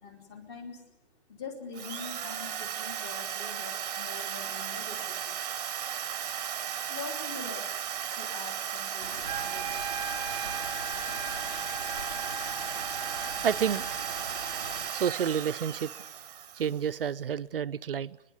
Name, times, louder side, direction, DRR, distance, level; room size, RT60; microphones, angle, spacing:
voice 1, 0.0-0.8 1.3-5.2 6.9-7.7 8.2-9.9, left 5 dB, 25° left, 3.4 m, -44 dB
Drill, 1.7-16.9, right 9 dB, 35° right, 1.0 m, -35 dB
sound 1, 9.0-14.9, left 1 dB, 80° left, 4.5 m, -43 dB
Wind instrument woodwind instrument, 9.2-15.3, right 5 dB, 15° right, 1.2 m, -39 dB
voice 2, 13.4-13.9 14.9-15.9 16.5-18.2, right 8 dB, 55° right, 0.7 m, -29 dB
30.0 x 11.0 x 9.6 m
figure-of-eight pair, 135°, 34 cm